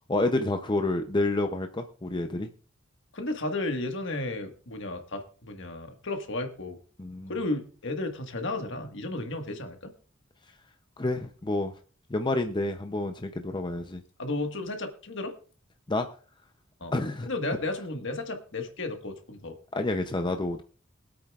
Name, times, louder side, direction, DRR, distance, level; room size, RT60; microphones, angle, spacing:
voice 1, 0.1-2.5 7.0-7.3 11.0-11.7 12.1-14.0 15.9-16.1 16.9-17.3 19.7-20.6, left 2 dB, 25° left, 6 dB, 0.6 m, -29 dB
voice 2, 3.1-6.8 7.3-9.9 14.2-15.3 16.8-16.9 17.2-19.6, left 2 dB, 65° left, 5 dB, 1.6 m, -33 dB
23.0 x 8.6 x 2.4 m, 0.40 s
head